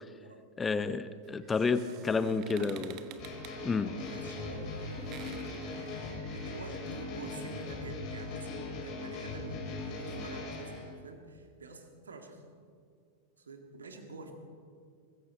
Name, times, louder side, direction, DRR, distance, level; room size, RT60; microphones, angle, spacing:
voice 1, 0.0-0.4 1.7-2.2 2.5-3.2 3.9-5.8 6.3-8.5 8.8-12.4 13.5-14.3, right 2 dB, 70° right, 5 dB, 2.1 m, -47 dB
voice 2, 0.6-2.9 3.6-3.9, left 4 dB, 15° left, 12 dB, 0.7 m, -30 dB
sound 1, 1.2-6.8, right 10 dB, 40° right, 1.2 m, -53 dB
sound 2, 3.2-10.9, left 2 dB, 40° left, 4.5 m, -40 dB
23.5 x 14.5 x 4.3 m, 2.2 s
figure-of-eight pair, 90°, 0 cm